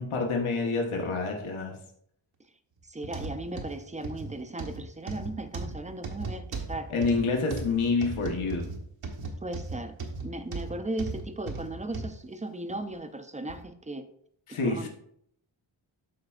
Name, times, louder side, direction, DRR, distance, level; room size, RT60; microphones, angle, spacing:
voice 1, 0.0-1.8 6.9-8.7 14.5-14.9, left 4 dB, 75° left, 2 dB, 1.2 m, -28 dB
voice 2, 2.8-6.9 9.4-10.0 10.2-14.1 14.5-14.9, right 1 dB, 15° right, 8 dB, 0.4 m, -37 dB
sound 1, 3.0-12.2 12.7-12.8 13.5-13.6, right 3 dB, 85° right, 1.4 m, -37 dB
13.0 x 4.4 x 2.4 m, 0.69 s
wide cardioid pair, 150°, 49 cm